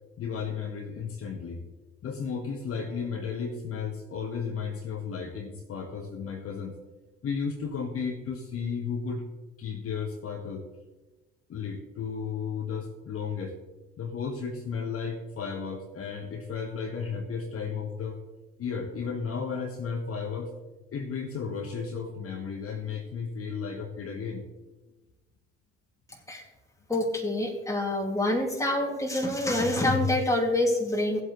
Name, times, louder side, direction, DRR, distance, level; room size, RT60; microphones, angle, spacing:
voice 1, 0.2-1.6 2.0-6.8 7.2-9.2 9.6-10.7 11.5-13.5 14.0-18.2 18.6-20.5 20.9-24.5, left 6 dB, 40° left, 2 dB, 1.4 m, -34 dB
voice 2, 26.9-31.2, left 1 dB, 10° left, 1 dB, 2.4 m, -26 dB
17.5 x 8.1 x 3.2 m, 1.2 s
figure-of-eight pair, 55°, 34 cm